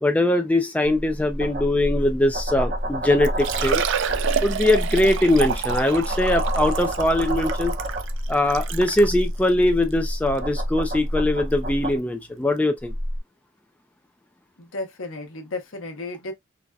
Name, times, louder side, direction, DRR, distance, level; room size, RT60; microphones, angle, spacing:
voice 1, 0.0-3.8 4.4-7.8 8.3-12.9, left 1 dB, 5° left, 0.3 m, -21 dB
sound 1, 0.8-12.0 12.8-13.2, equal, 45° right, 0.9 m, -28 dB
Liquid, 2.8-2.9 3.2-9.1 9.8-9.9 10.4-10.5 12.1-12.2 12.4-12.5, right 7 dB, 60° right, 0.4 m, -29 dB
voice 2, 14.6-16.3, left 2 dB, 70° left, 0.9 m, -33 dB
4.0 x 2.2 x 2.3 m
head